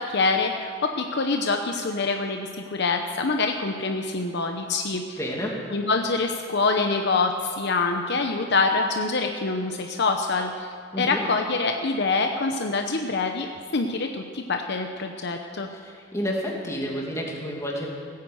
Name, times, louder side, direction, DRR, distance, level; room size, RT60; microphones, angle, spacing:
voice 1, 0.0-5.0 5.7-10.7 11.0-13.5 13.7-15.7, left 3 dB, 60° left, 4 dB, 0.8 m, -25 dB
voice 2, 5.2-5.6 10.9-11.2 15.7-17.9, equal, 15° left, -2 dB, 2.5 m, -30 dB
16.0 x 9.5 x 7.8 m, 2.2 s
head